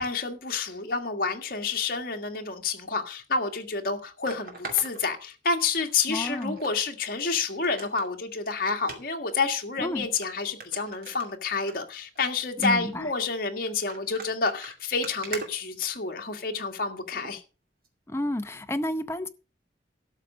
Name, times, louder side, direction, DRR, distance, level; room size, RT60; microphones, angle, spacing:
voice 1, 0.0-17.4, left 4 dB, 50° left, 1.8 m, -29 dB
sound 1, 3.2-3.3 4.3-5.7 6.2-6.8 7.1-7.2 7.6-8.1 8.8-9.0 9.7-9.8 10.2-10.3 10.6-11.7 12.1-12.3 12.6-12.9 13.7-16.3 17.1-17.3 17.9-18.0, right 3 dB, 50° right, 2.4 m, -41 dB
voice 2, 6.1-6.6 9.8-10.1 12.6-13.1 18.1-19.3, left 1 dB, 15° left, 0.7 m, -30 dB
12.5 x 6.6 x 6.1 m
head